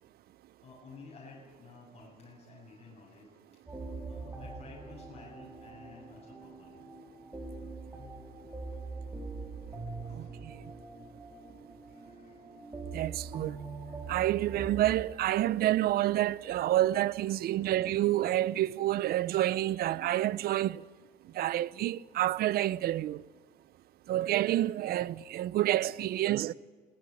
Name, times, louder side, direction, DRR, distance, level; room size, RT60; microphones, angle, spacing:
voice 1, 0.3-3.6 4.1-6.8 8.0-8.4 8.8-8.9 9.7-9.8 10.1-10.4 11.8-12.5 17.4-17.9 26.1-26.5, left 4 dB, 40° left, 8.0 m, -54 dB
sound 1, 3.7-15.0, right 3 dB, 15° right, 4.5 m, -43 dB
voice 2, 12.9-13.5 14.1-20.8 21.4-23.2 24.1-26.5, right 14 dB, 65° right, 0.7 m, -28 dB
20.5 x 19.5 x 9.9 m
cardioid pair, 110°, 17 cm